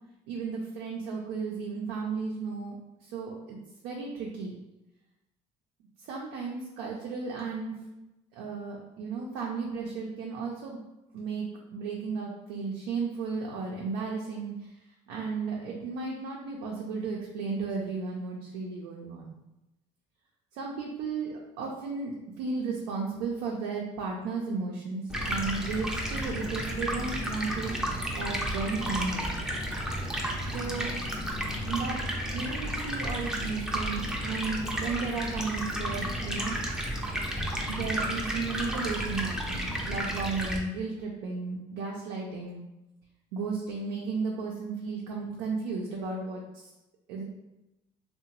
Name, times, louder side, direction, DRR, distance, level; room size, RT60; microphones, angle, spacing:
voice 1, 0.3-3.6 3.8-4.5 6.0-7.7 8.3-10.8 11.1-14.8 15.1-19.3 20.5-29.3 30.5-30.9 31.6-32.0 32.3-36.6 37.6-42.6 43.3-46.7 47.1-47.2, right 4 dB, 85° right, -2 dB, 0.4 m, -34 dB
Stream, 25.1-40.6, equal, 5° right, 0.5 m, -32 dB
2.8 x 2.1 x 2.8 m, 0.97 s
supercardioid pair, 80°, 15 cm